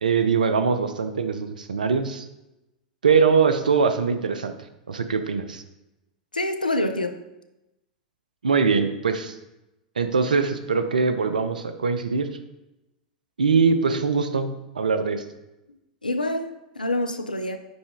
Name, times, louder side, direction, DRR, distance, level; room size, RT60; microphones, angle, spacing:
voice 1, 0.0-2.3 3.0-4.5 4.9-5.6 8.4-9.3 10.0-12.3 13.4-14.5 14.7-15.2, right 5 dB, 75° right, 10 dB, 0.6 m, -22 dB
voice 2, 6.3-7.2 16.0-17.6, left 1 dB, 90° left, 8 dB, 0.5 m, -26 dB
9.5 x 3.4 x 3.4 m, 0.95 s
figure-of-eight pair, 90°, 4 cm